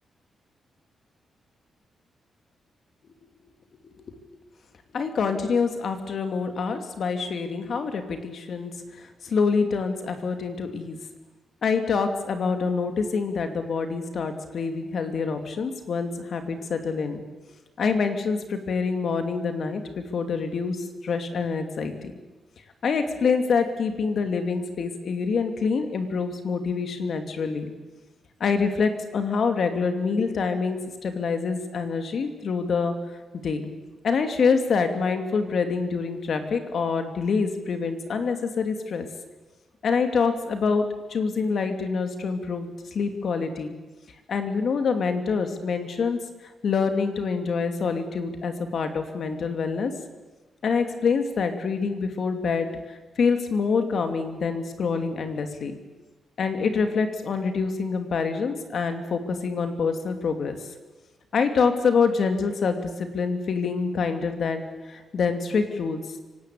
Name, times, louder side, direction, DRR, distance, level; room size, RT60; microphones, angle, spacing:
voice 1, 4.9-11.0 11.6-17.2 17.8-22.1 22.8-27.7 28.4-32.9 33.4-33.7 34.0-39.1 39.8-40.8 41.1-43.8 44.3-46.2 46.6-49.9 50.6-55.7 56.4-60.6 61.3-64.6 64.9-66.0, left 5 dB, 60° left, 7 dB, 2.7 m, -26 dB
25.0 x 18.5 x 8.6 m, 1.2 s
cardioid pair, 125°, 0 cm